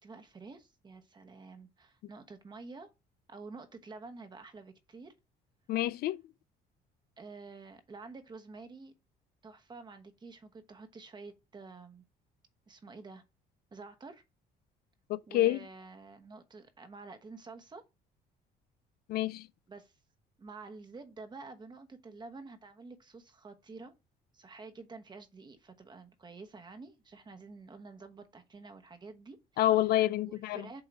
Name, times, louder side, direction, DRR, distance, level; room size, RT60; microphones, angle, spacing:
voice 1, 0.0-2.9 3.3-5.1 7.2-8.9 9.4-12.0 12.7-13.2 13.7-14.2 15.3-17.8 19.7-19.9 20.4-23.9 24.3-29.6 30.2-30.8, right 3 dB, 25° right, 1.1 m, -49 dB
voice 2, 5.7-6.2 15.1-15.6 19.1-19.5 29.6-30.7, left 14 dB, 65° left, 0.4 m, -28 dB
7.7 x 2.8 x 6.0 m
cardioid pair, 110°, 17 cm